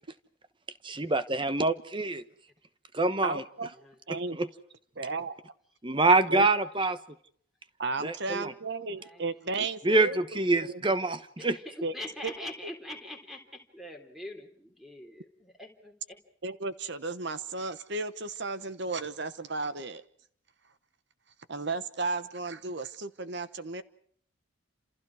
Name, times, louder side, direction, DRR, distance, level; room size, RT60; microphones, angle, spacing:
voice 1, 0.8-2.2 2.9-3.4 4.4-4.5 5.8-7.0 8.0-8.5 9.8-11.6, right 3 dB, 25° right, 12 dB, 1.0 m, -25 dB
voice 2, 3.2-3.7 4.1-4.4 5.0-5.4 6.3-6.5 7.8-10.2 10.6-10.8 11.8-11.9 12.2-12.3 16.4-20.0 21.5-23.8, right 3 dB, 55° right, 12 dB, 1.0 m, -34 dB
voice 3, 9.0-9.6 11.4-16.2, left 1 dB, ahead, 3 dB, 3.6 m, -43 dB
29.5 x 28.0 x 4.9 m, 0.63 s
head